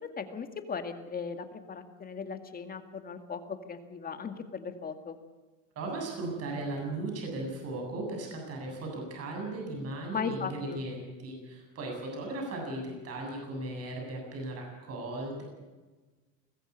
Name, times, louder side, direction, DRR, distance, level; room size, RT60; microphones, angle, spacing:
voice 1, 0.0-5.2 10.1-10.8, left 5 dB, 25° left, 8 dB, 2.1 m, -38 dB
voice 2, 5.8-15.4, right 2 dB, 45° right, 1 dB, 7.9 m, -37 dB
20.5 x 15.0 x 8.4 m, 1.3 s
supercardioid pair, 120°, 34 cm